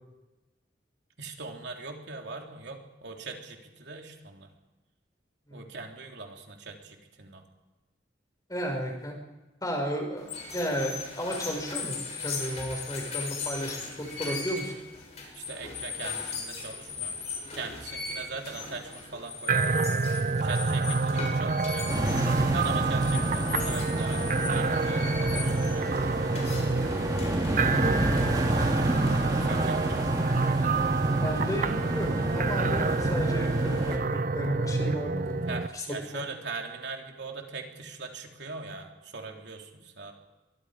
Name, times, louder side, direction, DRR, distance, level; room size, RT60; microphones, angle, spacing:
voice 1, 1.2-4.5 5.5-7.4 15.3-17.2 17.5-20.0 20.4-22.1 22.5-26.1 29.4-30.1 35.5-40.1, right 3 dB, 70° right, 2 dB, 3.3 m, -41 dB
voice 2, 8.5-9.2 9.6-14.7 31.2-35.9 36.1-36.2, equal, 20° left, 2 dB, 5.5 m, -34 dB
sound 1, 10.2-29.5, left 4 dB, 35° left, 6.6 m, -39 dB
sound 2, 19.5-35.7, right 3 dB, 45° right, 0.6 m, -27 dB
sound 3, 21.9-34.0, equal, 20° right, 3.5 m, -31 dB
23.5 x 23.5 x 5.0 m, 1.1 s
head